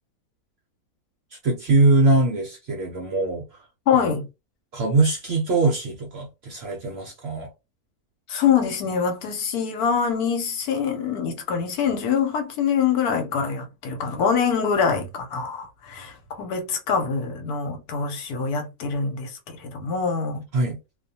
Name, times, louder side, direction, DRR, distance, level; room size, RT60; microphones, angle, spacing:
voice 1, 1.4-3.4 4.0-4.1 4.7-7.5 20.5-20.8, right 2 dB, 65° right, 0.7 m, -22 dB
voice 2, 3.9-4.3 8.3-20.4, left 6 dB, 85° left, 1.2 m, -24 dB
2.3 x 2.3 x 2.6 m
omnidirectional pair, 1.6 m